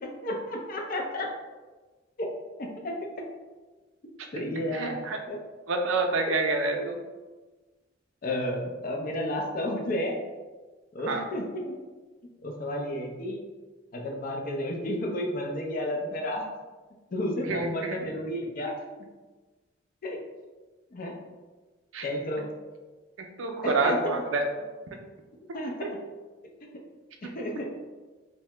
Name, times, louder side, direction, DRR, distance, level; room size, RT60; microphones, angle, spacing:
voice 1, 0.0-1.3 2.2-2.3 2.6-3.0 4.3-4.9 5.3-5.4 6.8-6.9 8.2-10.2 10.9-11.8 12.4-13.4 13.9-16.5 17.1-19.1 20.0-20.2 20.9-21.1 22.0-22.5 23.6-24.1 25.5-26.0 27.2-27.7, left 1 dB, 45° left, 1 dB, 0.4 m, -32 dB
voice 2, 4.7-5.2 5.7-7.0 11.1-11.2 17.4-18.0 21.9-22.1 23.4-24.5, right 3 dB, 85° right, 3 dB, 0.4 m, -27 dB
2.7 x 2.0 x 3.2 m, 1.3 s
head